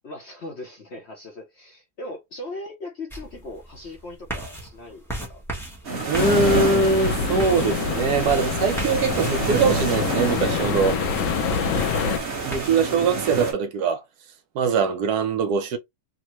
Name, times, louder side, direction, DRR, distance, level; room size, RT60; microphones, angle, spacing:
voice 1, 0.0-5.0 5.3-5.4 11.5-12.3, left 2 dB, 55° left, 0.8 m, -39 dB
sound 1, 3.1-12.7, right 1 dB, ahead, 0.6 m, -37 dB
sound 2, 5.8-13.5, right 4 dB, 40° right, 1.1 m, -29 dB
voice 2, 6.1-11.0 12.4-14.0 14.5-15.8, right 4 dB, 70° right, 1.1 m, -22 dB
sound 3, 6.2-12.2, left 7 dB, 85° left, 1.2 m, -26 dB
3.6 x 2.1 x 2.9 m
omnidirectional pair, 1.9 m